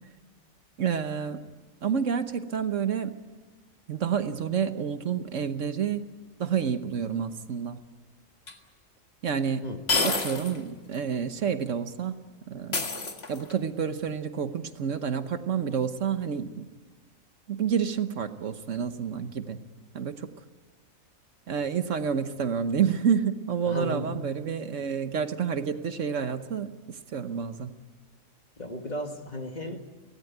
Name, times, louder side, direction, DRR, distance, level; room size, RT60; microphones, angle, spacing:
voice 1, 0.8-1.4 1.8-3.2 3.9-6.1 6.4-7.8 9.2-9.7 10.0-12.2 12.5-12.9 13.3-16.7 17.5-19.6 19.9-20.3 21.5-27.7, right 7 dB, 65° right, 10 dB, 1.3 m, -29 dB
sound 1, 8.5-8.6 9.9-10.6 10.9-11.0 12.7-13.6, left 3 dB, 50° left, 2.0 m, -28 dB
voice 2, 23.6-24.1 28.6-30.0, left 1 dB, 30° left, 5 dB, 1.7 m, -34 dB
24.5 x 17.5 x 9.2 m, 1.2 s
omnidirectional pair, 1.4 m